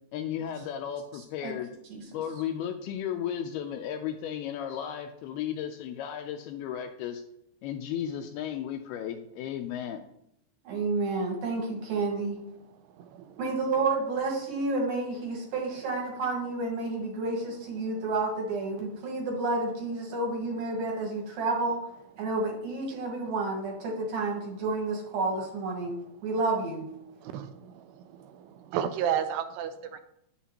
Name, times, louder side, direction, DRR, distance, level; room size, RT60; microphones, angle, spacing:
voice 1, 0.1-1.7 2.1-7.2 7.6-10.1, left 9 dB, 80° left, 5 dB, 2.3 m, -34 dB
voice 2, 10.6-12.4 13.4-21.8 22.2-26.0 26.2-26.9, right 3 dB, 65° right, -1 dB, 3.2 m, -30 dB
voice 3, 13.0-13.4 27.2-30.0, right 9 dB, 85° right, 9 dB, 2.5 m, -33 dB
9.1 x 7.2 x 2.9 m, 0.78 s
omnidirectional pair, 4.9 m